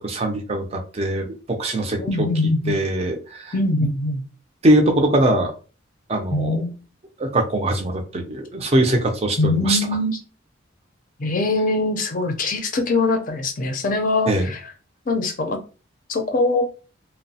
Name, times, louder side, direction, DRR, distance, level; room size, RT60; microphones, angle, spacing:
voice 1, 0.0-3.5 3.8-3.9 4.6-5.5 6.1-6.6 7.2-9.8 14.3-14.5, right 1 dB, 30° right, 4 dB, 0.4 m, -22 dB
voice 2, 2.0-2.8 3.5-4.2 6.3-6.7 9.4-10.2 11.2-14.6 15.1-15.6 16.1-16.6, left 2 dB, 40° left, 5 dB, 0.5 m, -22 dB
2.9 x 2.0 x 2.7 m, 0.36 s
head